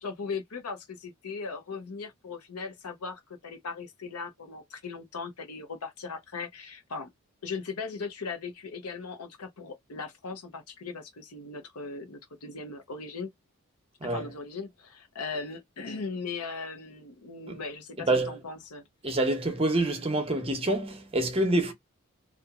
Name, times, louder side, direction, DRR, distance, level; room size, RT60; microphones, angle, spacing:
voice 1, 0.0-7.1 7.4-13.3 14.0-18.8, left 4 dB, 90° left, 0.8 m, -38 dB
voice 2, 18.0-18.3 19.0-21.7, right 2 dB, 25° right, 0.7 m, -27 dB
2.8 x 2.4 x 2.4 m
head